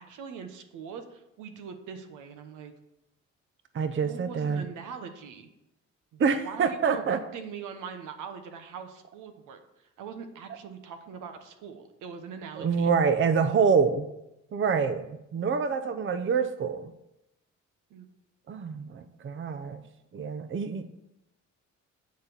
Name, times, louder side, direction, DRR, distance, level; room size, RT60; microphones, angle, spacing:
voice 1, 0.0-2.7 4.0-5.5 6.1-12.9 17.9-18.1, right 6 dB, 85° right, 7 dB, 1.1 m, -42 dB
voice 2, 3.7-4.6 6.2-7.2 12.6-14.1 14.5-16.9 18.5-19.8 20.1-20.8, right 6 dB, 40° right, 10 dB, 0.7 m, -26 dB
9.5 x 4.2 x 7.0 m, 0.87 s
cardioid pair, 90°, 30 cm